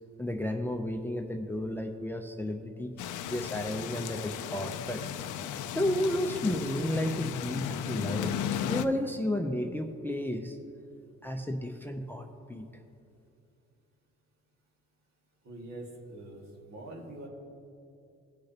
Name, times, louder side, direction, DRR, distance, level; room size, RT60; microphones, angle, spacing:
voice 1, 0.2-2.9 3.3-5.0 5.7-8.3 8.7-10.6 11.2-12.6, left 1 dB, 5° left, 5 dB, 0.6 m, -32 dB
sound 1, 3.0-8.8, left 10 dB, 80° left, 0.5 m, -35 dB
voice 2, 15.4-17.3, right 1 dB, 65° right, -1 dB, 2.1 m, -44 dB
18.5 x 6.4 x 2.9 m, 2.6 s
cardioid pair, 90°, 30 cm